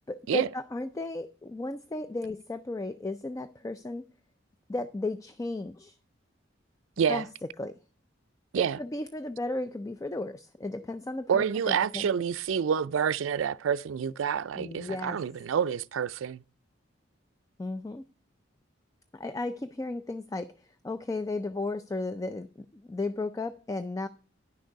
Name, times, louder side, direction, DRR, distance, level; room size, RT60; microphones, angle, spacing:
voice 1, 0.1-4.0 4.7-6.0 7.1-7.3 7.6-7.7 8.8-12.1 14.6-15.2 17.6-18.0 19.1-20.5 20.8-24.1, left 2 dB, 15° left, 0.3 m, -34 dB
voice 2, 11.3-16.4, right 7 dB, 85° right, 0.4 m, -28 dB
10.5 x 6.5 x 4.6 m
head